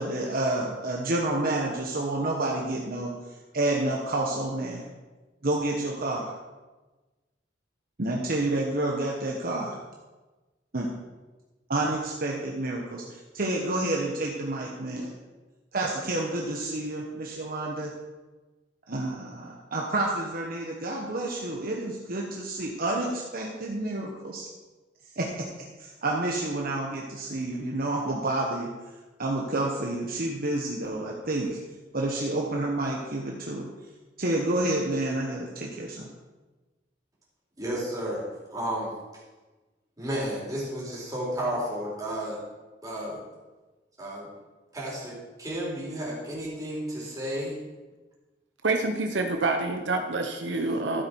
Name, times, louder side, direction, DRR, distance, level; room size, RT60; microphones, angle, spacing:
voice 1, 0.0-3.1 3.5-4.8 5.4-6.3 8.0-9.8 10.7-10.9 11.7-15.1 15.7-17.9 18.9-24.5 25.2-25.5 25.8-28.7 29.2-31.6 31.9-33.7 34.2-36.1, right 2 dB, 55° right, -1 dB, 1.3 m, -29 dB
voice 2, 37.6-38.2 38.5-38.9 40.0-42.4 42.8-43.2 44.0-44.3 44.7-47.6, equal, 20° right, -5 dB, 3.9 m, -32 dB
voice 3, 48.6-51.0, right 3 dB, 85° right, 4 dB, 1.0 m, -27 dB
13.5 x 8.3 x 4.7 m, 1.2 s
head